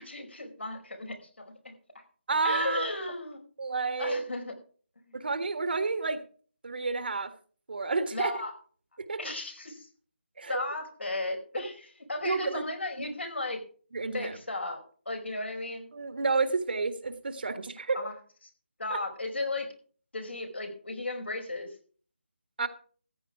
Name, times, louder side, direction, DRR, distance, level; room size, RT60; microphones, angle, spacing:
voice 1, 0.0-1.7 2.4-3.4 4.0-4.5 5.0-5.2 8.1-8.5 9.2-9.9 10.5-13.6 14.1-15.9 17.9-18.1 18.8-19.7 20.1-21.7, left 2 dB, 85° left, 4 dB, 4.8 m, -35 dB
voice 2, 2.3-2.9 3.6-4.2 5.1-6.2 6.6-7.3 7.7-8.3 9.1-9.2 10.4-10.6 12.2-12.6 13.0-13.1 13.9-14.4 15.9-18.0 18.9-19.0 22.6-22.7, right 4 dB, 60° right, 10 dB, 1.7 m, -30 dB
14.5 x 9.7 x 4.8 m, 0.43 s
figure-of-eight pair, 160°, 6 cm